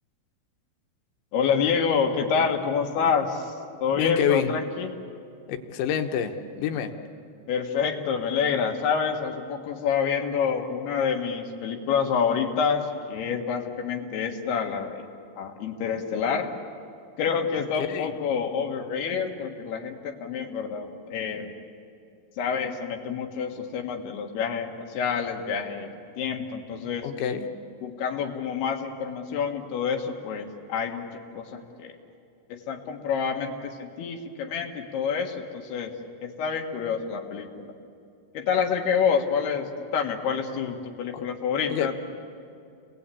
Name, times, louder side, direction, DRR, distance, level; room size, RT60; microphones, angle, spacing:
voice 1, 1.3-3.5 3.8-4.9 7.5-15.1 15.4-16.5 17.2-21.5 22.4-25.9 26.2-27.1 27.8-31.1 31.3-31.5 31.8-32.0 32.5-35.9 36.2-37.7 38.3-42.0, left 6 dB, 70° left, 3 dB, 3.4 m, -27 dB
voice 2, 4.0-4.5 5.5-6.9 17.9-18.1 27.0-27.5 41.1-41.2 41.7-41.9, left 8 dB, 85° left, 6 dB, 3.5 m, -27 dB
29.0 x 20.5 x 8.5 m, 2.6 s
omnidirectional pair, 5.1 m